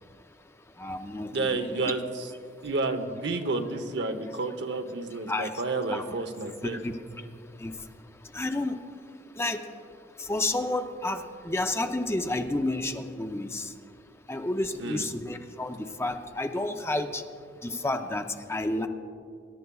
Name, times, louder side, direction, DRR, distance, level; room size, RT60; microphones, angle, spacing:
voice 1, 0.8-1.8 5.3-5.6 5.9-6.0 6.6-7.0 7.6-7.8 8.3-8.8 9.4-9.6 10.2-13.7 14.3-17.2 17.6-18.9, left 2 dB, 15° left, 6 dB, 0.5 m, -30 dB
voice 2, 1.3-2.3 2.6-6.8 14.8-15.1, right 3 dB, 65° right, 7 dB, 0.9 m, -30 dB
24.0 x 12.0 x 2.3 m, 2.4 s
head